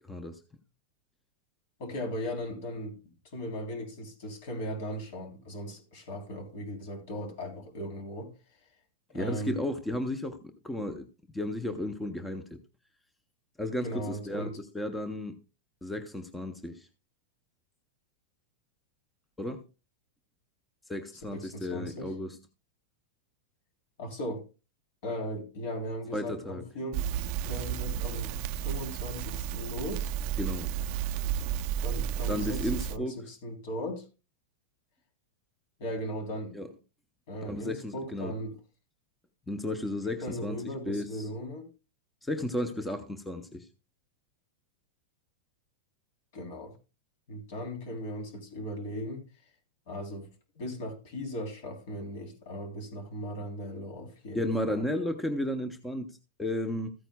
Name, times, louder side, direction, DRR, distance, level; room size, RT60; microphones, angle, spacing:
voice 1, 0.1-0.4 9.1-11.1 11.3-12.6 13.6-15.4 15.8-16.9 19.4-19.6 20.9-22.4 26.1-26.7 30.4-30.7 32.3-33.2 36.5-36.7 37.4-38.4 39.5-41.3 42.2-43.7 54.3-56.9, left 1 dB, 5° left, 0.7 m, -34 dB
voice 2, 1.8-2.9 3.3-8.3 9.1-9.6 13.8-14.5 21.3-22.1 24.0-24.4 25.0-27.0 27.4-28.3 28.6-30.1 31.8-34.0 35.8-36.6 37.3-38.5 40.2-41.7 46.3-46.7 47.3-49.2 49.9-50.3 50.5-54.8, equal, 60° left, 3.3 m, -37 dB
Crackle, 26.9-33.0, right 10 dB, 45° right, 0.5 m, -32 dB
14.5 x 8.9 x 2.2 m
supercardioid pair, 140°, 0 cm